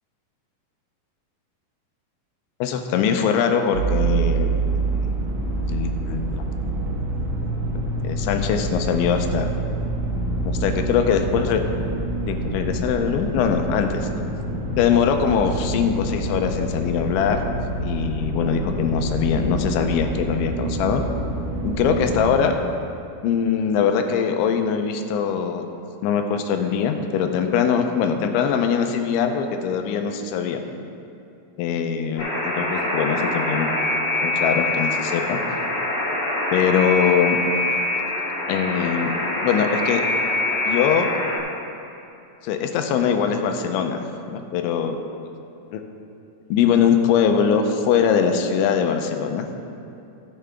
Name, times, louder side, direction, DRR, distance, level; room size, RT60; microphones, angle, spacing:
voice 1, 2.6-4.5 5.7-6.5 8.0-9.5 10.4-11.6 12.3-14.1 14.8-17.5 17.8-21.0 21.6-22.6 23.2-25.7 26.0-30.6 31.6-32.3 32.5-33.7 34.2-35.4 36.5-37.4 38.5-39.1 39.4-40.0 40.7-41.1 42.4-45.0 45.7-45.8 46.5-49.5, left 7 dB, 85° left, 5 dB, 3.0 m, -22 dB
sound 1, 3.7-22.4, right 2 dB, 80° right, 1.7 m, -26 dB
Alarm, 32.2-41.4, left 1 dB, 40° left, 2.9 m, -24 dB
16.0 x 7.6 x 3.5 m, 2.7 s
omnidirectional pair, 5.4 m